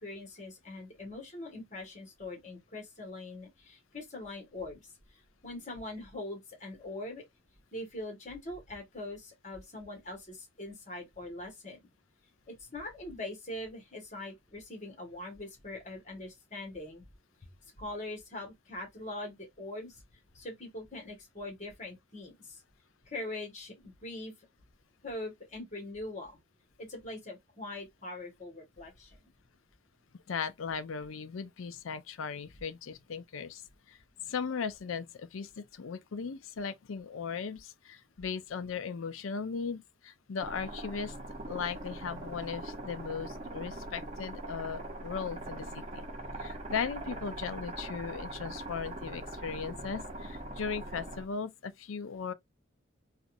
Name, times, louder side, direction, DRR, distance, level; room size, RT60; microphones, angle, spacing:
voice 1, 0.0-4.8 5.1-7.2 7.7-11.9 12.5-17.0 17.4-17.5 17.8-20.0 20.3-22.6 23.0-24.3 25.0-26.4 26.8-29.3, left 2 dB, 35° left, 1.6 m, -42 dB
voice 2, 30.3-33.6 33.9-34.0 34.2-41.1 41.4-46.1 46.4-52.3, left 6 dB, 90° left, 0.5 m, -37 dB
sound 1, 40.4-51.2, right 1 dB, 35° right, 0.9 m, -42 dB
4.0 x 2.5 x 2.6 m
head